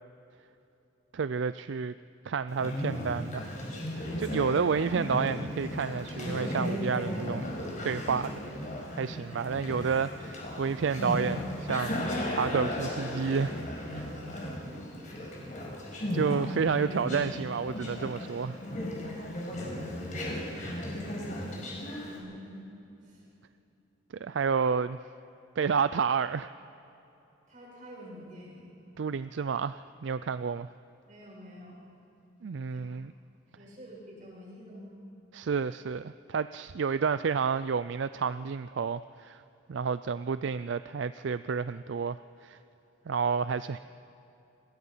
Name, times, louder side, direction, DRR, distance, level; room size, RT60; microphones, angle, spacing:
voice 1, 1.1-1.9 2.3-3.4 3.9-7.5 7.8-8.4 9.0-13.6 13.9-14.1 16.1-18.6 24.1-25.0 25.6-26.5 29.0-30.7 32.4-33.1 35.3-39.4 39.7-42.6 43.1-43.8, right 5 dB, 65° right, 14 dB, 0.4 m, -30 dB
Conversation, 2.5-22.2, left 1 dB, 40° left, 5.3 m, -36 dB
voice 2, 21.6-22.7 23.0-23.3 27.5-28.8 31.1-31.8 32.7-33.0 33.6-35.0, equal, 40° right, -3 dB, 7.6 m, -48 dB
28.0 x 22.0 x 5.7 m, 2.9 s
head